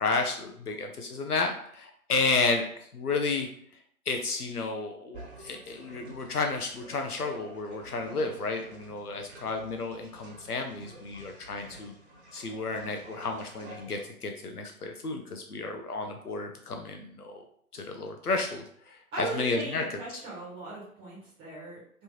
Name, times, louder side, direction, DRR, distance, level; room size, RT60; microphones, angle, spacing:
voice 1, 0.0-3.5 4.1-11.9 12.3-17.4 17.7-20.0, left 3 dB, 85° left, 4 dB, 0.6 m, -32 dB
sound 1, 5.1-14.0, right 1 dB, 45° right, 1.3 m, -49 dB
voice 2, 19.1-22.0, right 2 dB, 10° right, -8 dB, 1.1 m, -39 dB
3.3 x 2.9 x 2.7 m, 0.63 s
figure-of-eight pair, 130°, 45 cm